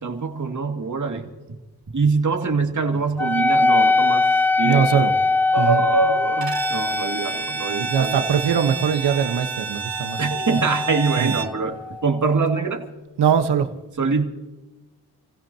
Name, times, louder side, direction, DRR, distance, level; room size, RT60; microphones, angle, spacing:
voice 1, 0.0-1.2 1.9-4.3 4.6-5.1 5.5-8.2 10.2-12.8 14.0-14.2, right 4 dB, 45° right, 3 dB, 2.6 m, -24 dB
Wind instrument woodwind instrument, 3.2-12.1, left 3 dB, 5° left, 0.6 m, -23 dB
voice 2, 4.6-5.1 5.6-5.8 7.7-10.2 11.2-11.3 13.2-13.7, right 7 dB, 80° right, 8 dB, 1.4 m, -21 dB
Bowed string instrument, 6.4-11.6, right 6 dB, 60° right, 1.5 m, -31 dB
28.5 x 16.0 x 3.0 m, 1.1 s
supercardioid pair, 40°, 40 cm